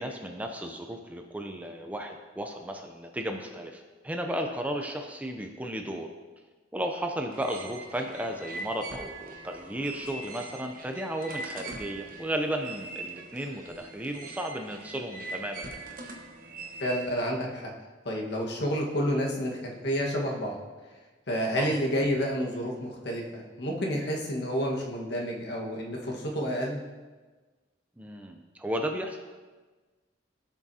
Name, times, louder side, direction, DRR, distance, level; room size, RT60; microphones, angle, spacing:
voice 1, 0.0-6.1 6.7-15.8 21.6-21.7 28.0-29.2, right 1 dB, 10° right, 4 dB, 0.5 m, -34 dB
sound 1, 7.3-17.1, right 2 dB, 50° right, 1.1 m, -42 dB
voice 2, 16.8-17.7 18.0-20.6 21.3-26.8, equal, 60° left, -1 dB, 1.4 m, -30 dB
15.0 x 6.0 x 2.8 m, 1.3 s
head